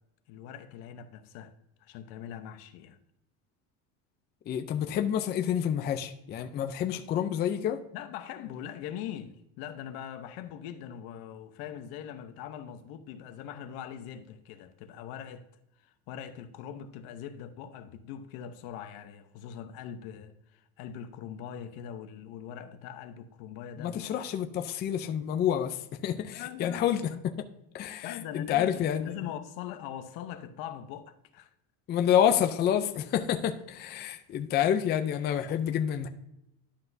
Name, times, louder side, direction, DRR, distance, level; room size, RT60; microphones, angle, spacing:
voice 1, 0.3-1.5 1.8-3.0 7.9-15.5 15.8-24.1 26.3-27.2 28.0-31.5, left 9 dB, 70° left, 0.8 m, -42 dB
voice 2, 4.5-7.8 23.8-27.1 27.7-29.1 31.9-36.1, left 9 dB, 30° left, 0.4 m, -28 dB
11.5 x 5.8 x 2.6 m
cardioid pair, 145°, 37 cm